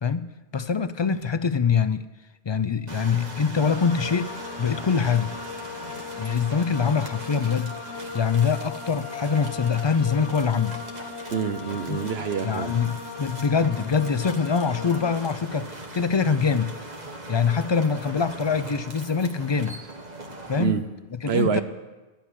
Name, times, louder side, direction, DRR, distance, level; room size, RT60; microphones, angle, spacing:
voice 1, 0.0-2.1 2.5-5.3 6.2-7.7 8.1-10.8 11.9-12.0 12.4-16.7 17.3-19.8 20.5-20.8 21.2-21.6, left 6 dB, 45° left, 0.3 m, -24 dB
sound 1, 2.9-20.6, right 2 dB, 40° right, 1.6 m, -41 dB
sound 2, 3.5-15.1, left 5 dB, 75° left, 1.4 m, -38 dB
voice 2, 11.3-12.8 20.6-20.8 21.2-21.6, right 7 dB, 65° right, 1.1 m, -26 dB
13.0 x 7.3 x 9.9 m
omnidirectional pair, 1.1 m